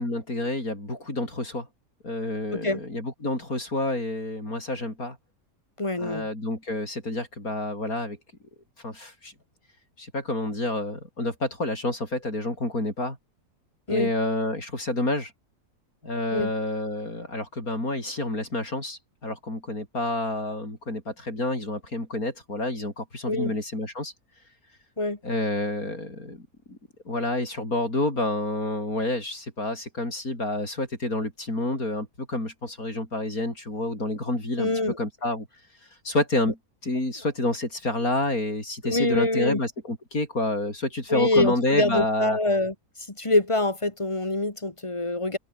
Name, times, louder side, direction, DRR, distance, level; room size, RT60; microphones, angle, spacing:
voice 1, 0.0-1.7 2.0-5.2 6.0-8.2 8.8-9.3 10.0-13.2 13.9-15.3 16.0-24.1 25.2-26.4 26.7-26.8 27.0-34.7 35.0-35.5 36.0-36.6 36.8-42.4, left 2 dB, 55° left, 8.1 m, -29 dB
voice 2, 5.8-6.3 13.9-14.1 16.3-16.5 23.3-23.5 25.0-25.2 34.6-35.0 38.8-39.6 41.1-42.7 43.2-45.4, left 2 dB, 20° left, 2.2 m, -25 dB
open air
omnidirectional pair, 1.8 m